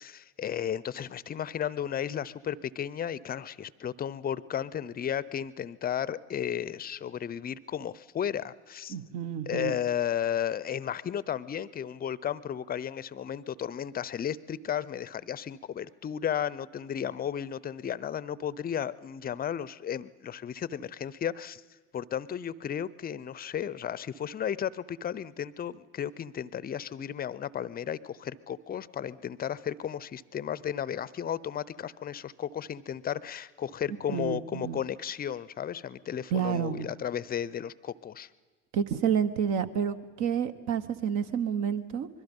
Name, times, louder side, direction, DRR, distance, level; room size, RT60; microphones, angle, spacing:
voice 1, 0.0-9.0 9.5-21.6 21.9-38.3, left 9 dB, 25° left, 19 dB, 0.7 m, -34 dB
voice 2, 8.9-9.7 34.1-34.8 36.3-36.9 38.7-42.1, right 8 dB, 55° right, 10 dB, 1.3 m, -29 dB
24.5 x 22.0 x 5.4 m, 1.4 s
hypercardioid pair, 75°, 34 cm